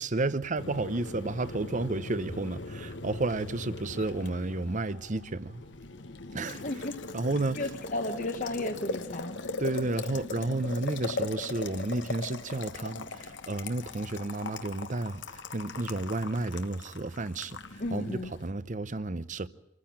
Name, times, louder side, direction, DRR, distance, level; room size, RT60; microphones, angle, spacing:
voice 1, 0.0-5.6 6.3-6.8 7.1-7.7 9.6-19.5, right 2 dB, 40° right, 0.8 m, -32 dB
Boiling, 0.6-18.5, left 3 dB, 75° left, 1.4 m, -40 dB
voice 2, 6.6-6.9 7.6-9.3 17.8-18.3, left 2 dB, 45° left, 1.2 m, -33 dB
27.0 x 14.5 x 8.8 m
head